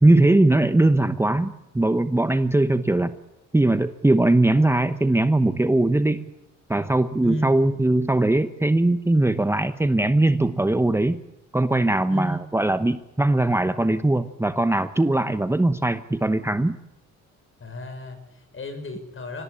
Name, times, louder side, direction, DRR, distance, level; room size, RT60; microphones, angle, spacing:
voice 1, 0.0-3.1 3.5-6.3 6.7-11.2 11.5-16.8, right 2 dB, 10° right, 10 dB, 1.0 m, -20 dB
voice 2, 7.2-7.6 12.1-12.4 17.6-19.4, left 1 dB, 45° left, 8 dB, 6.6 m, -33 dB
25.0 x 19.0 x 8.6 m, 0.98 s
cardioid pair, 90°, 30 cm